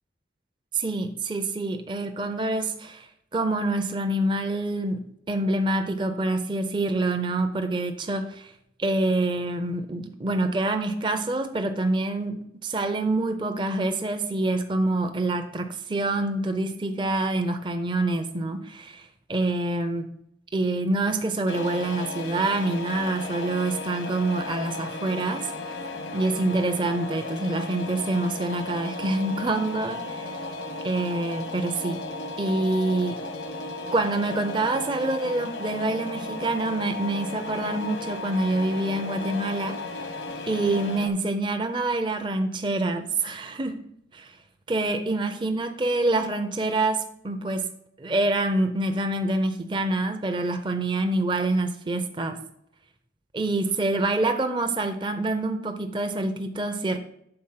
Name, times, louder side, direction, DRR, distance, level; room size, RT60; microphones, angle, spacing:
voice 1, 0.7-8.5 8.8-20.2 20.5-25.8 26.1-30.3 30.8-32.1 32.4-33.2 33.9-40.2 40.5-43.9 44.1-44.4 44.7-47.7 48.0-52.4 53.3-57.0, right 2 dB, 25° right, 7 dB, 0.5 m, -26 dB
sound 1, 21.5-41.1, left 2 dB, 80° left, 1.0 m, -35 dB
7.7 x 4.0 x 5.6 m, 0.76 s
head